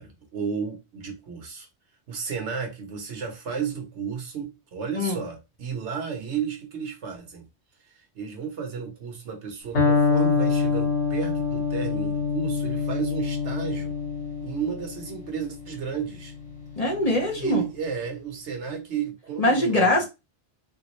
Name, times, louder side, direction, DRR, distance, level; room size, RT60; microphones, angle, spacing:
voice 1, 0.0-1.7 2.1-7.4 7.8-13.9 14.4-16.3 17.4-20.0, right 6 dB, 85° right, 1.2 m, -33 dB
Electric guitar, 9.8-17.6, left 5 dB, 75° left, 1.6 m, -26 dB
voice 2, 16.8-17.7 19.4-20.0, left 1 dB, 35° left, 0.9 m, -22 dB
3.4 x 2.4 x 3.0 m
omnidirectional pair, 1.2 m